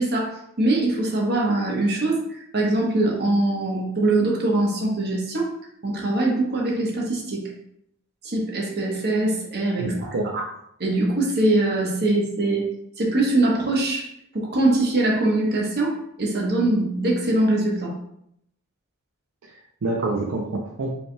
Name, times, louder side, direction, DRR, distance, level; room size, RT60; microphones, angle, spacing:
voice 1, 0.0-5.5 5.8-7.4 8.2-10.4 10.8-12.6 13.0-14.1 14.3-17.9, right 2 dB, 50° right, -1 dB, 1.0 m, -22 dB
voice 2, 9.8-10.3 19.4-20.9, right 2 dB, 70° right, 0 dB, 0.5 m, -28 dB
5.1 x 3.4 x 2.2 m, 0.73 s
head